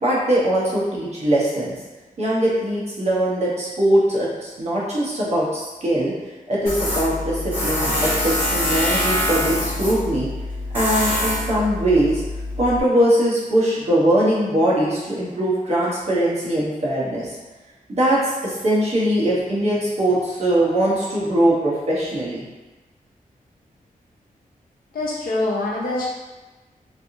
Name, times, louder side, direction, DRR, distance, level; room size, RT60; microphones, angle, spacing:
voice 1, 0.0-1.7 2.2-6.1 6.5-10.3 10.7-12.2 12.6-17.3 17.9-22.4, right 1 dB, 45° right, -7 dB, 1.1 m, -21 dB
Tools, 6.7-12.8, left 1 dB, 15° right, 1.1 m, -24 dB
voice 2, 24.9-26.1, left 2 dB, 75° left, -5 dB, 0.8 m, -24 dB
3.4 x 2.6 x 2.7 m, 1.2 s
wide cardioid pair, 155°, 15 cm